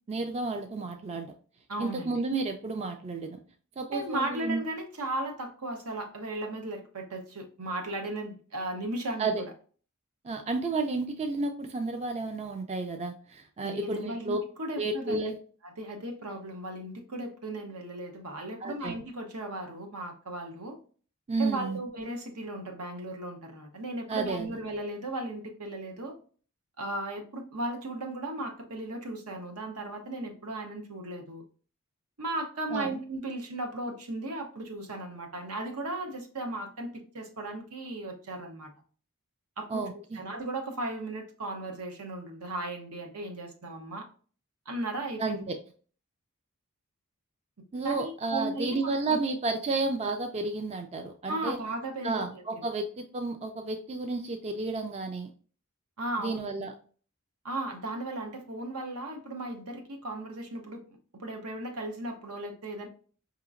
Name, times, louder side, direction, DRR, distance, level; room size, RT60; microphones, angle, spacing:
voice 1, 0.1-1.3 1.8-3.4 3.8-4.7 9.2-9.4 10.2-14.4 14.8-15.4 18.6-19.0 21.3-21.8 24.1-24.6 32.7-32.9 39.7-40.2 45.2-45.6 47.7-51.6 52.0-55.3 56.2-56.7, right 3 dB, 30° right, 6 dB, 0.3 m, -31 dB
voice 2, 1.7-2.2 3.9-9.5 13.6-15.3 15.6-20.8 21.4-26.2 26.8-31.4 32.2-38.7 39.6-39.9 40.1-44.1 44.7-45.4 47.8-49.2 51.3-52.2 56.0-56.5 57.4-60.8 61.1-62.9, right 1 dB, 80° right, 3 dB, 0.9 m, -36 dB
4.9 x 2.9 x 2.4 m, 0.42 s
head